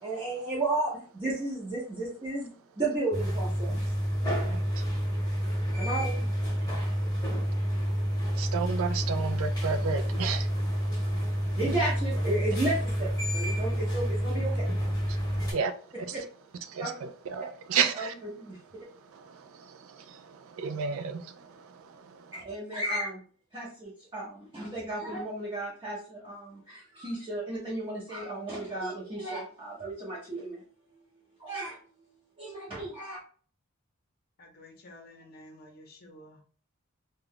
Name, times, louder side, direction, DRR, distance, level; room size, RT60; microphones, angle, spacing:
voice 1, 0.0-3.7 5.8-6.2 7.0-7.1 11.0-11.1 11.5-14.7 15.9-16.2 16.8-16.9 17.7-18.9 22.3-23.2 23.5-30.6 31.4-31.8 32.4-33.2, right 2 dB, 25° right, 0.7 m, -33 dB
sound 1, 3.1-15.5, equal, 20° left, 0.9 m, -29 dB
voice 2, 4.4-4.8 8.4-11.3 15.5-15.7 16.1-16.2 16.7-18.1 19.1-22.2, right 6 dB, 70° right, 0.3 m, -33 dB
voice 3, 34.4-36.4, left 1 dB, 45° left, 0.7 m, -51 dB
2.4 x 2.2 x 3.4 m
head